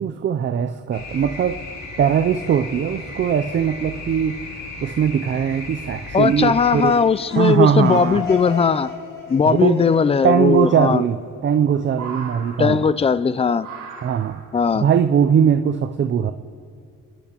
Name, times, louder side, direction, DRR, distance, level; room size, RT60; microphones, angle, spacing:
voice 1, 0.0-1.6 2.0-4.4 4.8-7.1 7.4-8.2 9.5-9.8 10.2-12.9 14.0-14.4 14.7-16.3, right 8 dB, 40° right, 9 dB, 0.5 m, -20 dB
sound 1, 0.9-6.9, left 2 dB, 65° left, 2.6 m, -35 dB
voice 2, 6.1-8.9 9.3-11.0 12.6-13.7 14.5-14.9, left 5 dB, 20° left, 16 dB, 0.3 m, -18 dB
sound 2, 6.8-11.3, left 4 dB, 45° left, 3.4 m, -34 dB
sound 3, 7.8-8.2 9.8-9.9 11.1-11.6 11.9-13.1 13.6-14.6 15.6-15.7, right 5 dB, 70° right, 3.3 m, -38 dB
29.0 x 10.5 x 2.9 m, 2.2 s
cardioid pair, 90°, 30 cm